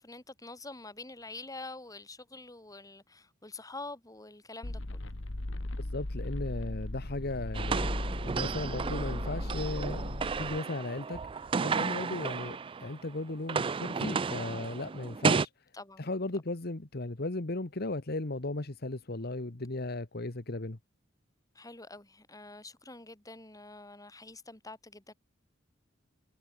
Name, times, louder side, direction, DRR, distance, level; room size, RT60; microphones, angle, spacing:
voice 1, 0.0-5.0 15.7-16.0 21.5-25.1, left 3 dB, 20° left, 3.3 m, -46 dB
sound 1, 4.6-10.6, left 1 dB, 85° left, 1.8 m, -37 dB
voice 2, 5.8-7.9 8.2-11.2 11.6-15.5 16.0-20.8, left 2 dB, 55° left, 1.4 m, -36 dB
sound 2, 7.5-13.0 13.3-15.5, right 5 dB, 25° right, 0.4 m, -33 dB
head